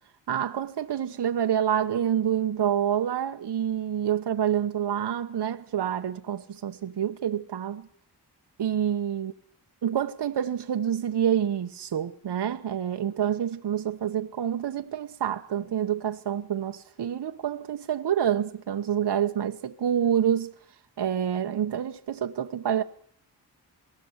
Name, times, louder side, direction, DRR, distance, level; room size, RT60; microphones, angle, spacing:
voice 1, 0.3-7.9 8.6-9.3 9.8-20.5 21.0-22.8, right 9 dB, 75° right, 1.1 m, -27 dB
28.0 x 19.5 x 8.0 m
wide cardioid pair, 100°, 41 cm